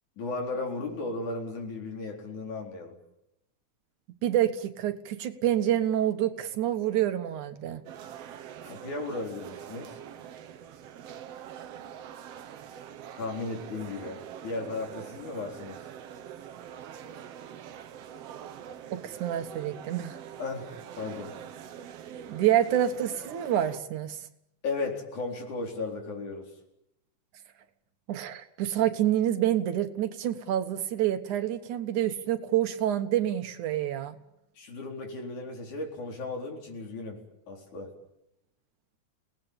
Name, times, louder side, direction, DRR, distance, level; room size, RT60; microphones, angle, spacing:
voice 1, 0.2-3.0 8.6-10.0 13.1-15.8 20.4-20.7 21.0-21.3 24.6-26.5 34.6-37.9, left 3 dB, 75° left, 1 dB, 5.8 m, -35 dB
voice 2, 4.2-7.8 18.9-20.2 22.3-24.2 28.1-34.2, right 11 dB, 80° right, 9 dB, 2.9 m, -27 dB
sound 1, 7.9-23.8, right 9 dB, 60° right, 2.0 m, -44 dB
29.0 x 19.0 x 8.9 m, 0.83 s
omnidirectional pair, 3.5 m